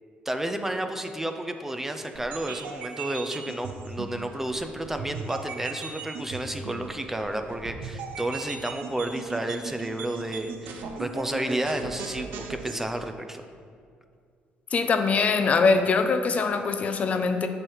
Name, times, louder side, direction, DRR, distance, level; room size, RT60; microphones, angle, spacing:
voice 1, 0.3-13.4, right 1 dB, 10° right, 6 dB, 0.5 m, -31 dB
sound 1, 2.1-12.8, right 4 dB, 80° right, 0.6 m, -38 dB
voice 2, 14.7-17.5, left 4 dB, 40° left, 7 dB, 0.5 m, -23 dB
7.5 x 3.3 x 6.2 m, 2.2 s
cardioid pair, 100°, 4 cm